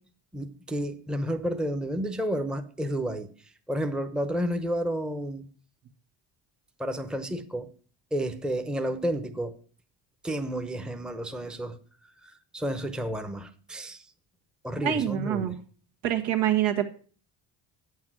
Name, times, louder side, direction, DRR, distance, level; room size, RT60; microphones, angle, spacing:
voice 1, 0.3-5.5 6.8-7.7 8.1-9.5 10.2-11.8 12.2-14.1 14.6-15.6, equal, ahead, 0.8 m, -31 dB
voice 2, 14.8-15.6 16.0-16.9, right 10 dB, 75° right, 1.5 m, -25 dB
8.5 x 6.4 x 6.0 m
cardioid pair, 85°, 47 cm